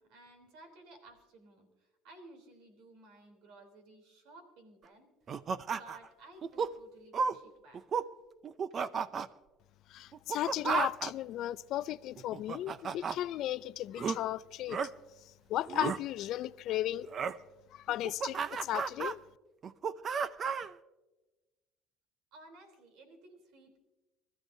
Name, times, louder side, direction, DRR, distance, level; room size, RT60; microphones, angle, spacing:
voice 1, 0.0-5.1 5.7-8.1 22.3-23.8, right 2 dB, 75° right, 3.6 m, -56 dB
sound 1, 5.3-6.1 6.4-6.7 7.1-7.4 7.7-8.1 8.4-9.3 10.1-11.1 12.2-13.2 14.0-14.2 14.7-14.9 15.7-16.0 17.1-17.4 17.9-19.1 19.6-20.7, right 6 dB, 40° right, 0.6 m, -33 dB
voice 2, 9.9-14.8 15.5-17.1 17.7-19.2, left 13 dB, 60° left, 0.4 m, -35 dB
24.0 x 14.0 x 2.7 m
supercardioid pair, 100°, 0 cm